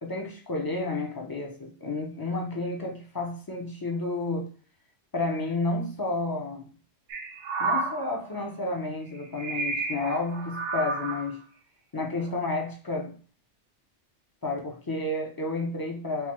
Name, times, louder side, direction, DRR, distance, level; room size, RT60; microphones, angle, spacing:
voice 1, 0.0-4.5 5.1-6.7 7.6-11.4 11.9-13.1 14.4-16.3, left 2 dB, 30° left, 1 dB, 0.4 m, -31 dB
sound 1, 7.1-8.5 9.2-11.3 12.1-12.5, right 3 dB, 75° right, 1.0 m, -31 dB
4.6 x 2.2 x 2.9 m, 0.38 s
omnidirectional pair, 1.2 m